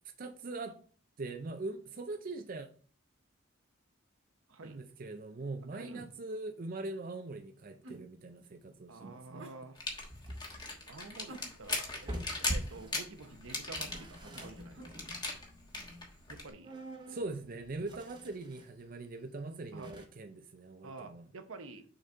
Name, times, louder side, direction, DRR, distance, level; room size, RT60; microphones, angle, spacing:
voice 1, 0.2-0.8 1.2-2.7 4.6-9.5 17.1-21.2, right 2 dB, 45° right, 0.5 m, -42 dB
sound 1, 5.8-6.2 7.8-8.1 9.4-9.6 11.3-11.9 13.2-13.5 14.7-15.0, right 2 dB, 70° right, 1.6 m, -50 dB
voice 2, 8.9-9.8 10.9-15.1 16.3-16.7 19.7-19.9 20.8-21.8, right 3 dB, 85° right, 0.9 m, -49 dB
sound 2, 9.8-16.5, left 2 dB, 20° left, 1.3 m, -38 dB
sound 3, 10.0-13.2 13.6-18.8 19.2-19.3 19.8-20.1, equal, 20° right, 0.9 m, -48 dB
6.4 x 4.0 x 4.4 m
head